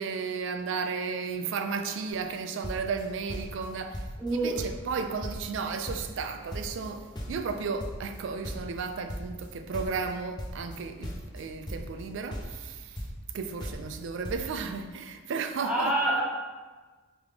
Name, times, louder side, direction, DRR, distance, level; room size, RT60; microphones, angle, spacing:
voice 1, 0.0-4.1 4.4-13.0 13.3-15.9, right 5 dB, 65° right, 0.3 m, -34 dB
sound 1, 2.1-2.4 2.6-3.7 3.9-4.3 4.6-6.3 6.5-9.5 9.7-12.0 12.3-13.3 13.6-14.0 14.2-14.4, equal, 20° left, 0.5 m, -38 dB
voice 2, 4.2-4.6 15.6-16.2, right 1 dB, 5° right, 0.8 m, -27 dB
3.5 x 3.5 x 3.2 m
head